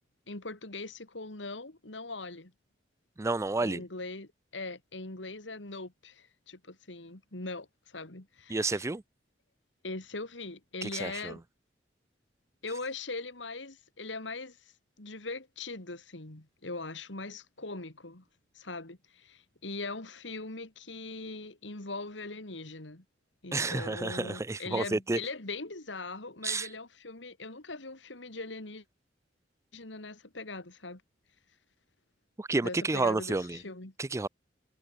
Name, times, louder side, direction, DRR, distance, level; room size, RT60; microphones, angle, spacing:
voice 1, 0.3-2.5 3.6-8.8 9.8-11.4 12.6-18.2 18.5-23.0 23.4-28.8 29.7-31.0 32.6-33.9, left 3 dB, 85° left, 2.9 m, -41 dB
voice 2, 3.2-3.8 8.5-9.0 10.8-11.4 23.5-25.2 26.4-26.7 32.4-33.6 34.0-34.3, right 3 dB, 15° right, 0.4 m, -30 dB
head